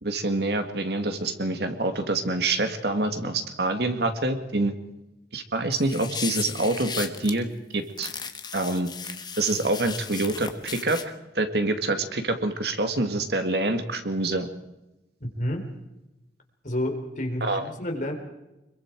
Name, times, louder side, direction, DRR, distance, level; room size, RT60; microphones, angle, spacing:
voice 1, 0.0-4.7 5.3-7.5 7.7-8.1 8.5-8.9 9.4-11.0 11.4-14.5 17.4-17.6, right 2 dB, 60° right, 7 dB, 2.1 m, -26 dB
sound 1, 5.7-7.3 8.0-11.0, left 6 dB, 25° left, 1.4 m, -35 dB
voice 2, 15.2-15.6 16.6-18.1, left 1 dB, 45° left, 2 dB, 4.1 m, -29 dB
26.0 x 22.5 x 4.8 m, 0.96 s
head